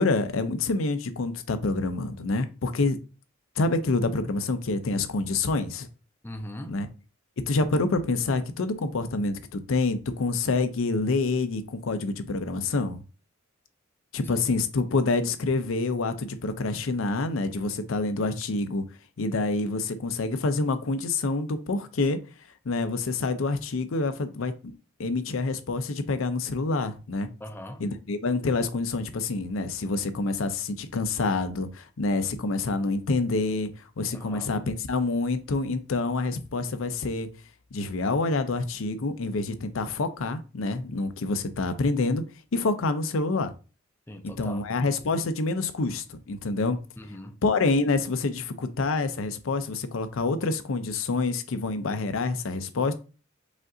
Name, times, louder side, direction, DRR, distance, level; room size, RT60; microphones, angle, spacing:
voice 1, 0.0-3.0 3.6-5.9 6.7-6.9 7.4-13.0 14.1-18.8 19.2-22.2 22.7-24.7 25.0-27.3 27.8-33.7 34.0-37.3 37.7-42.2 42.5-43.5 44.2-46.8 47.4-52.9, left 3 dB, 85° left, 0.6 m, -27 dB
voice 2, 6.2-6.9 14.3-14.6 14.9-15.0 27.4-27.8 34.1-34.5 44.1-44.6 47.0-47.4, left 1 dB, 10° left, 0.4 m, -40 dB
5.1 x 2.5 x 3.8 m
head